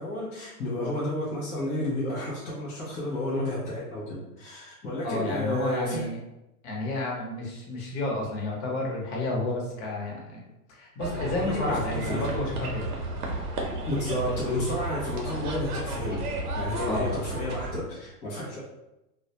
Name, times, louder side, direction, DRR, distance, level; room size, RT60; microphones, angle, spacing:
voice 1, 0.0-6.1 11.2-12.3 13.9-16.2 16.5-18.6, left 1 dB, 20° left, -8 dB, 0.4 m, -31 dB
voice 2, 5.0-6.2 6.6-10.4 10.7-12.9 16.8-17.2, left 2 dB, 45° left, -1 dB, 0.9 m, -31 dB
sound 1, 11.0-17.8, right 2 dB, 80° right, 0.7 m, -33 dB
2.2 x 2.1 x 2.7 m, 0.94 s
hypercardioid pair, 125°, 45 cm